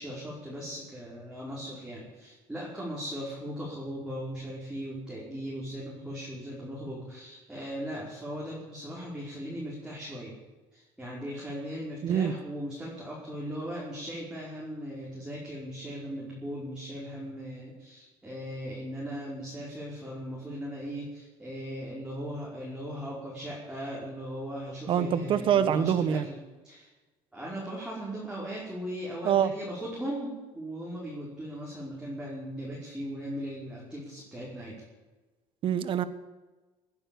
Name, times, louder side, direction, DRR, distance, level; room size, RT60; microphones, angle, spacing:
voice 1, 0.0-10.3 10.7-26.4 26.6-26.9 27.3-34.8, equal, 5° right, -6 dB, 5.0 m, -38 dB
voice 2, 12.0-12.3 24.9-26.3 29.2-29.5 35.6-36.0, right 9 dB, 50° right, 13 dB, 1.3 m, -25 dB
20.5 x 9.9 x 7.0 m, 1.2 s
cardioid pair, 120°, 12 cm